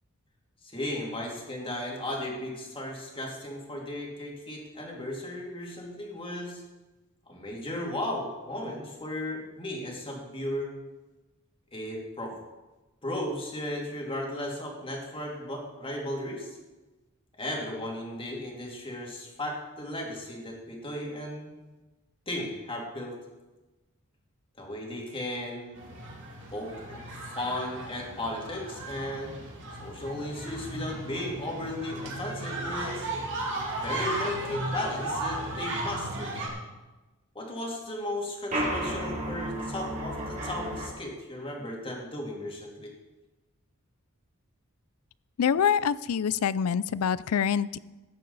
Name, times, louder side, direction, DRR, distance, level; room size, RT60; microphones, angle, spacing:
voice 1, 0.6-6.6 7.3-10.7 11.7-12.3 13.0-16.6 17.4-21.5 22.3-23.2 24.6-25.8 26.5-29.4 29.8-33.1 33.8-36.4 37.3-42.9, left 1 dB, 25° left, -1 dB, 2.4 m, -35 dB
sound 1, 25.8-36.5, right 1 dB, 60° right, 2.6 m, -35 dB
sound 2, 38.5-40.9, right 1 dB, 35° right, 2.7 m, -32 dB
voice 2, 45.4-47.8, left 7 dB, 70° left, 19 dB, 0.4 m, -25 dB
14.0 x 9.8 x 4.0 m, 1.1 s
head